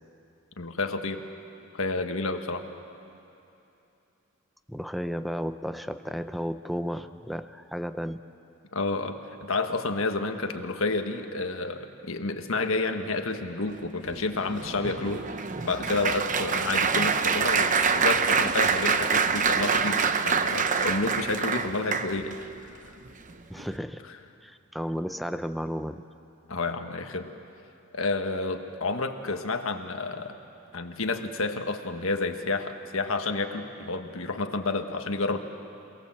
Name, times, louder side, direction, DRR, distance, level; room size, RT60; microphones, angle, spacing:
voice 1, 0.6-1.2 1.7-2.6 8.7-15.3 15.6-22.3 26.5-27.3 27.9-30.4 30.7-35.4, left 3 dB, 75° left, 6 dB, 1.5 m, -30 dB
voice 2, 4.7-8.2 23.5-24.1 24.4-26.0, equal, ahead, 9 dB, 0.6 m, -33 dB
Applause, 14.1-22.4 23.1-23.3 23.6-23.8, right 5 dB, 40° right, 0.8 m, -26 dB
27.5 x 18.5 x 7.6 m, 2.8 s
head